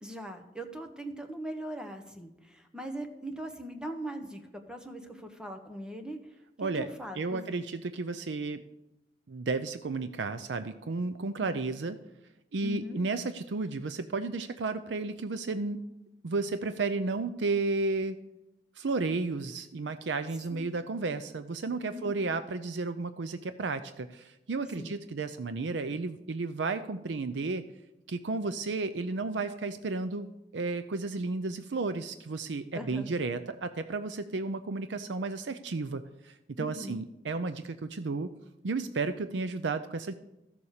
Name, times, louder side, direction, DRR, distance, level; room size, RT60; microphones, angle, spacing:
voice 1, 0.0-6.2 6.6-7.7 12.6-13.0 20.5-20.6 21.9-22.2 24.8-24.9 32.7-33.1 36.6-37.0, equal, 5° right, 5 dB, 1.1 m, -40 dB
voice 2, 6.6-6.9 7.1-8.6 9.3-12.0 12.5-15.8 16.2-18.2 18.8-27.6 28.1-30.3 30.5-38.3 38.6-40.1, right 3 dB, 90° right, 10 dB, 0.6 m, -33 dB
14.0 x 7.0 x 6.5 m, 0.91 s
head